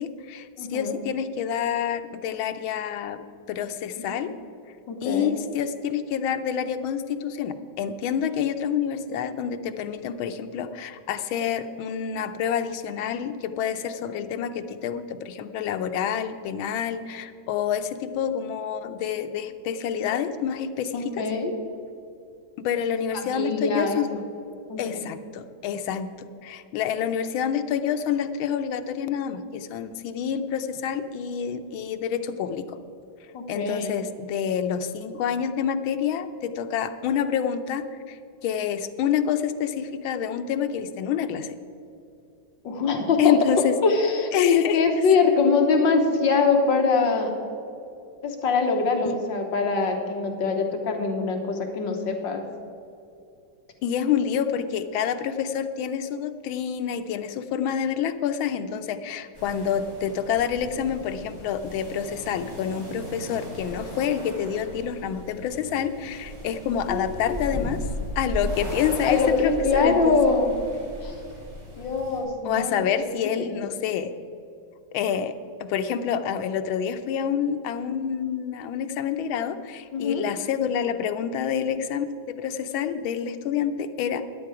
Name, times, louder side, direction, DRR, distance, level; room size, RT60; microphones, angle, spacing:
voice 1, 0.0-4.3 5.0-21.3 22.6-24.1 24.8-26.1 26.4-32.8 33.5-41.6 43.2-43.7 44.3-44.8 49.0-49.2 53.8-67.8 68.2-70.4 72.4-74.1 74.9-75.3 75.6-84.2, left 8 dB, 85° left, 9 dB, 1.5 m, -27 dB
voice 2, 0.6-0.9 4.1-4.2 4.9-5.3 20.9-21.5 23.3-24.0 24.7-24.8 33.3-33.9 42.6-43.4 43.8-47.4 48.2-52.4 66.9-67.7 69.0-70.5 71.0-71.1 71.8-73.6 79.9-80.2, left 4 dB, 70° left, 3 dB, 1.8 m, -23 dB
sound 1, 59.3-72.2, equal, 20° right, 3.4 m, -37 dB
13.5 x 10.0 x 4.8 m, 2.7 s
omnidirectional pair, 2.2 m